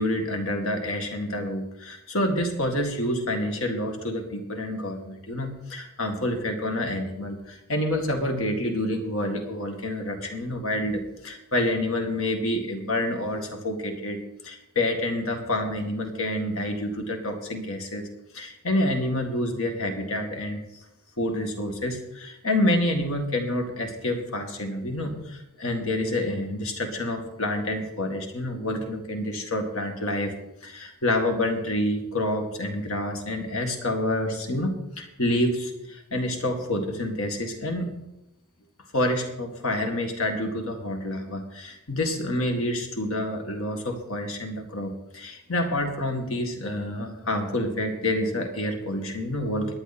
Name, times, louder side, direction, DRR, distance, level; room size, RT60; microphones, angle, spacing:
voice 1, 0.0-14.2 14.4-18.1 18.3-20.6 21.2-30.3 30.6-37.9 38.9-49.7, left 1 dB, 65° left, 4 dB, 2.1 m, -28 dB
18.0 x 10.5 x 4.3 m, 0.90 s
head